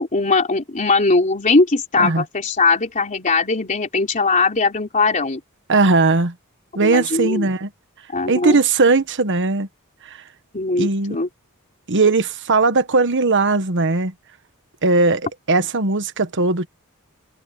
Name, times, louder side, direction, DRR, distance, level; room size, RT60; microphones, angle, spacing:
voice 1, 0.0-5.4 6.8-7.5 8.1-8.6 10.5-11.3, left 3 dB, 35° left, 3.3 m, -20 dB
voice 2, 5.7-6.3 6.7-7.7 8.3-9.7 10.1-10.2 10.8-11.2 11.9-14.1 14.8-16.7, right 3 dB, 55° right, 1.3 m, -18 dB
head